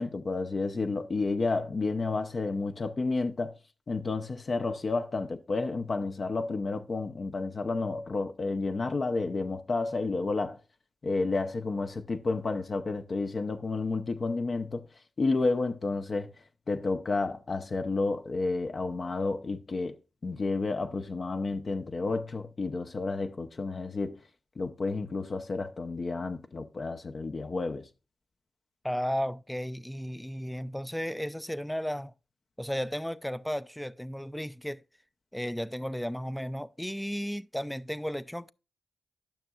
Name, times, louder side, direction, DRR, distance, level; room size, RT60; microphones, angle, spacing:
voice 1, 0.0-3.5 3.9-10.6 11.0-14.9 15.2-16.3 16.7-20.0 20.2-24.2 24.6-27.9, left 3 dB, 55° left, 0.6 m, -31 dB
voice 2, 28.8-32.1 32.6-34.8 35.3-38.5, equal, 5° left, 0.4 m, -34 dB
12.0 x 6.1 x 2.3 m
supercardioid pair, 45°, 0 cm